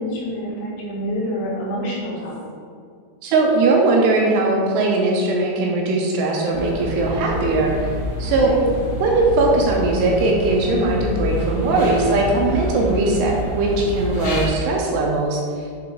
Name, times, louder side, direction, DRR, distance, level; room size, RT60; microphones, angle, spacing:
voice 1, 0.0-2.4 8.4-8.7, equal, 75° left, -5 dB, 2.9 m, -27 dB
voice 2, 3.2-7.9 8.2-8.5 9.0-15.4, right 2 dB, 80° right, -1 dB, 2.6 m, -19 dB
sound 1, 6.5-14.5, left 1 dB, 55° left, 2.0 m, -28 dB
7.5 x 3.9 x 3.7 m, 2.2 s
omnidirectional pair, 5.2 m